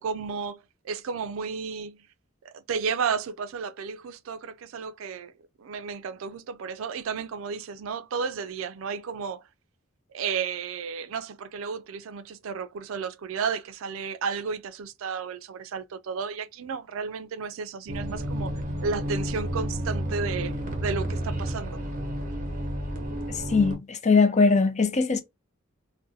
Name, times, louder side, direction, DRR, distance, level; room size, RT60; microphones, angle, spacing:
voice 1, 0.0-2.0 2.4-5.3 5.6-9.5 10.1-18.5 18.8-20.5 20.8-21.8, right 5 dB, 75° right, 0.4 m, -33 dB
sound 1, 17.9-23.8, equal, 40° right, 0.9 m, -31 dB
voice 2, 23.3-25.2, left 4 dB, 35° left, 0.5 m, -21 dB
2.5 x 2.2 x 3.9 m
head